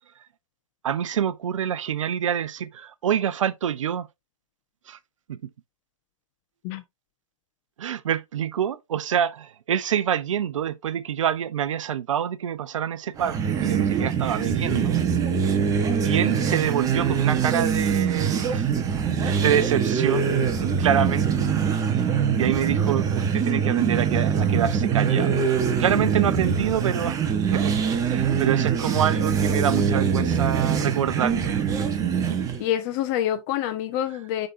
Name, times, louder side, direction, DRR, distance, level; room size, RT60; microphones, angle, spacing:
voice 1, 0.8-4.1 4.9-5.0 5.3-5.5 7.8-15.0 16.0-18.7 19.2-21.5 22.4-25.4 25.8-27.2 27.5-31.6 31.9-32.4, right 9 dB, 70° right, 0.6 m, -26 dB
sound 1, 13.2-32.6, right 7 dB, 20° right, 1.1 m, -23 dB
voice 2, 32.6-34.5, left 11 dB, 35° left, 1.3 m, -26 dB
10.0 x 3.8 x 2.7 m
hypercardioid pair, 125°, 17 cm